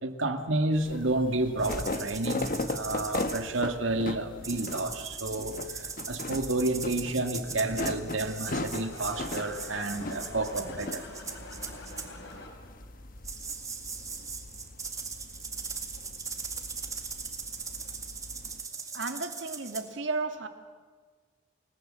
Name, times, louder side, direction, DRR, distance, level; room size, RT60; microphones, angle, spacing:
voice 1, 0.0-11.1, right 2 dB, 85° right, 7 dB, 2.1 m, -30 dB
sound 1, 0.7-18.6, left 2 dB, 45° left, 1.2 m, -39 dB
sound 2, 1.6-3.6 4.4-12.1 13.2-19.8, right 5 dB, 15° right, 2.0 m, -39 dB
sound 3, 8.7-12.8, left 2 dB, 65° left, 4.7 m, -46 dB
voice 2, 18.9-20.5, right 3 dB, 70° right, 7 dB, 2.2 m, -33 dB
29.5 x 18.5 x 7.7 m, 1.6 s
head